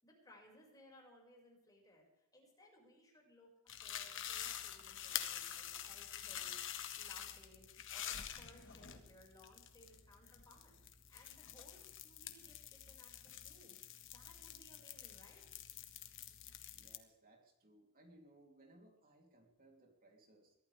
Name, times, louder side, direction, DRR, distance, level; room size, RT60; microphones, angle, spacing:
voice 1, 0.0-2.1 2.3-3.5 3.8-6.6 6.9-10.8 11.1-13.8 14.1-15.4, left 1 dB, 15° left, -2 dB, 6.0 m, -63 dB
sound 1, 3.7-17.0, left 10 dB, 60° left, 1.6 m, -47 dB
voice 2, 16.7-20.5, right 1 dB, 40° right, 1 dB, 3.4 m, -64 dB
23.0 x 15.5 x 3.6 m, 0.85 s
head